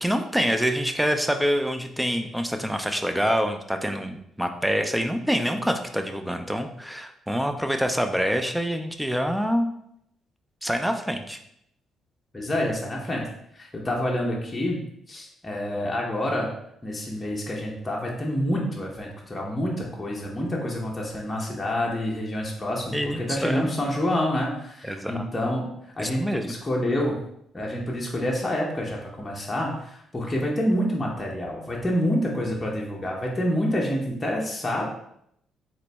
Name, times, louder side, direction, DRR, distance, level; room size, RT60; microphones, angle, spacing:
voice 1, 0.0-9.7 10.6-11.4 22.9-23.7 24.8-25.3 26.0-26.5, equal, 5° right, 6 dB, 0.4 m, -26 dB
voice 2, 12.3-13.2 13.5-14.8 15.1-16.5 16.8-27.2 27.5-34.8, left 1 dB, 20° left, -3 dB, 0.8 m, -27 dB
3.9 x 3.0 x 3.4 m, 0.75 s
cardioid pair, 90°, 0 cm